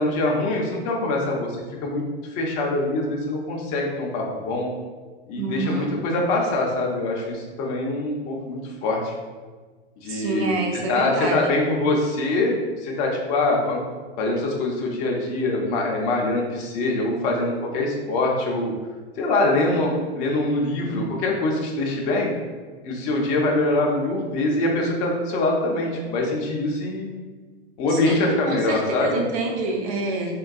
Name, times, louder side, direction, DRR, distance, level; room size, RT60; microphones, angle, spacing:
voice 1, 0.0-1.6 1.8-2.0 2.3-4.7 5.3-9.1 10.0-13.8 14.2-18.7 19.2-22.3 22.8-27.1 27.8-29.2, left 2 dB, 25° left, -1 dB, 0.4 m, -24 dB
voice 2, 5.4-5.9 10.1-11.4 27.9-30.4, right 2 dB, 35° right, 1 dB, 0.5 m, -27 dB
3.6 x 2.2 x 2.3 m, 1.4 s
figure-of-eight pair, 95°, 32 cm